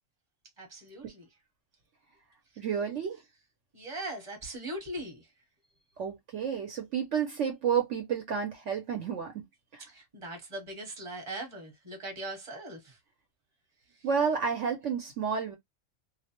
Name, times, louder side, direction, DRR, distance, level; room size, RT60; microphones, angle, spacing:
voice 1, 0.6-1.2 3.7-5.3 9.9-13.0, right 1 dB, 25° right, 1.0 m, -40 dB
voice 2, 2.6-3.2 6.0-9.4 9.7-9.9 14.0-15.6, right 7 dB, 65° right, 1.0 m, -30 dB
2.4 x 2.1 x 2.8 m
omnidirectional pair, 1.4 m